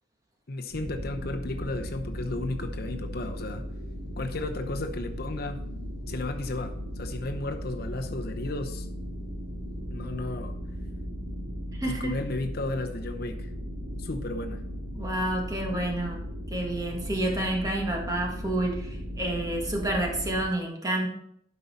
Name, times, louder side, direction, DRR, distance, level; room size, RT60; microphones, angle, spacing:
voice 1, 0.5-3.6 4.2-5.6 6.1-8.9 9.9-10.5 11.8-13.4 14.0-14.6, left 2 dB, 55° left, 5 dB, 0.8 m, -34 dB
sound 1, 0.7-20.4, equal, 80° right, 2.8 m, -36 dB
voice 2, 11.8-12.2 14.9-21.1, right 1 dB, 20° right, 0 dB, 1.7 m, -29 dB
11.5 x 5.5 x 4.2 m, 0.71 s
head